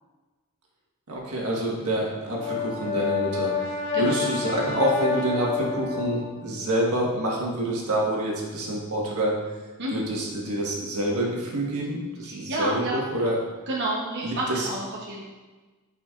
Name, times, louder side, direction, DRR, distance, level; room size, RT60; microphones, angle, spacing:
voice 1, 1.1-9.4 9.9-13.3 14.2-14.7, right 1 dB, 80° right, -3 dB, 1.5 m, -27 dB
Brass instrument, 2.1-6.4, left 6 dB, 60° left, 0.9 m, -28 dB
voice 2, 12.2-13.0 13.7-15.2, right 1 dB, 50° right, -4 dB, 0.9 m, -30 dB
9.2 x 5.3 x 2.5 m, 1.3 s
head